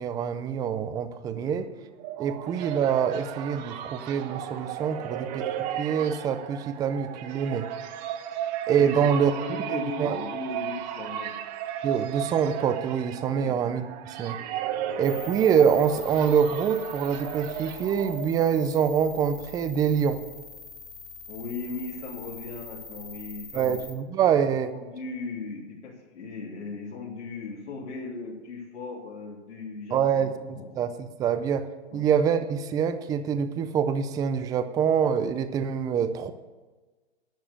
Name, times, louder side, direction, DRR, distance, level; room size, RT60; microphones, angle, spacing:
voice 1, 0.0-1.7 2.2-5.5 5.8-7.7 8.7-9.3 9.7-10.2 11.8-14.4 15.0-20.2 23.5-24.7 29.9-36.3, right 7 dB, 10° right, 10 dB, 0.4 m, -25 dB
sound 1, 1.7-18.7, right 10 dB, 40° right, 1.1 m, -35 dB
voice 2, 8.8-11.3 13.3-13.6 21.3-23.8 24.7-30.7 31.9-32.1, left 4 dB, 85° left, -5 dB, 3.6 m, -38 dB
sound 2, 15.0-23.9, left 4 dB, 5° left, 1.7 m, -44 dB
11.5 x 7.3 x 8.5 m, 1.3 s
hypercardioid pair, 135°, 34 cm